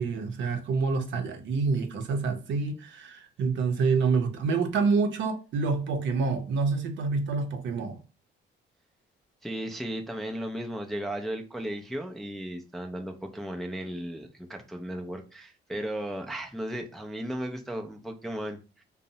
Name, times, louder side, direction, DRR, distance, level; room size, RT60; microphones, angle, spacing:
voice 1, 0.0-8.0, right 4 dB, 70° right, 0.5 m, -27 dB
voice 2, 9.4-18.8, right 1 dB, ahead, 0.3 m, -35 dB
2.5 x 2.0 x 2.7 m
cardioid pair, 90°, 20 cm